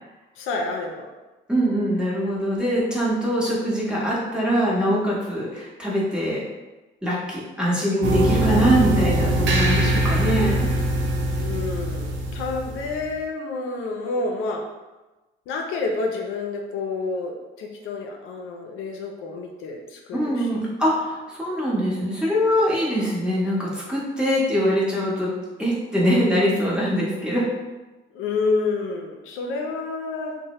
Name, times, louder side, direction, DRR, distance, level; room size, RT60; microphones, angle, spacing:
voice 1, 0.4-1.1 11.4-14.6 15.5-20.7 28.1-30.4, left 3 dB, 85° left, 1 dB, 0.4 m, -29 dB
voice 2, 1.5-6.4 7.0-10.7 20.1-25.3 25.6-27.5, equal, 5° right, -6 dB, 0.9 m, -23 dB
sound 1, 8.0-13.1, right 1 dB, 70° right, 0.5 m, -22 dB
2.7 x 2.0 x 2.9 m, 1.1 s
cardioid pair, 90°, 20 cm